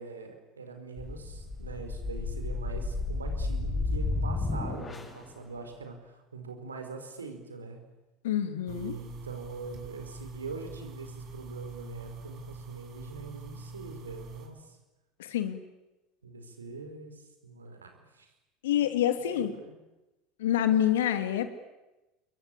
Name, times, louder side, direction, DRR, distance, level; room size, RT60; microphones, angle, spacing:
voice 1, 0.0-7.8 8.6-14.8 16.2-18.3 18.8-19.8, right 4 dB, 85° right, 6 dB, 4.8 m, -43 dB
sound 1, 1.0-5.3, left 3 dB, 25° left, 7.4 m, -32 dB
voice 2, 8.2-8.9 15.2-15.6 18.6-19.5 20.4-21.5, left 10 dB, 75° left, 10 dB, 2.6 m, -27 dB
sound 2, 8.7-14.5, right 3 dB, 55° right, 6.0 m, -44 dB
28.0 x 23.5 x 8.5 m, 1.0 s
hypercardioid pair, 70°, 0 cm